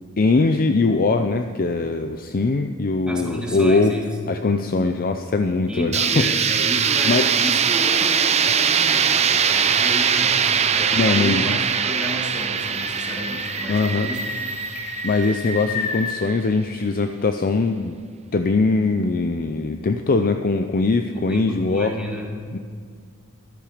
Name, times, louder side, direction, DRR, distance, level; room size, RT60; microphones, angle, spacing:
voice 1, 0.2-3.9 4.3-6.5 7.0-7.3 10.9-11.6 13.7-14.1 15.0-18.0 18.3-21.9 22.5-22.6, left 3 dB, 40° left, 7 dB, 0.5 m, -21 dB
voice 2, 3.1-4.1 5.7-14.2 21.1-22.3, equal, 5° right, -1 dB, 1.9 m, -31 dB
sound 1, 5.9-15.7, right 7 dB, 30° right, 0.5 m, -21 dB
sound 2, 9.0-16.2, left 2 dB, 85° left, 2.4 m, -33 dB
13.5 x 12.0 x 5.0 m, 2.1 s
head